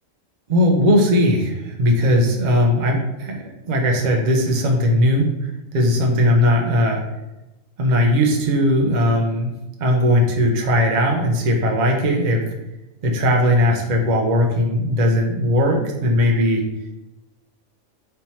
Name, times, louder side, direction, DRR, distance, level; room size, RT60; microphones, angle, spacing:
voice 1, 0.5-5.3 5.7-7.0 7.8-9.5 9.8-12.5 13.0-16.6, left 1 dB, 45° right, 1 dB, 0.6 m, -18 dB
3.4 x 2.9 x 4.1 m, 1.0 s
omnidirectional pair, 1.4 m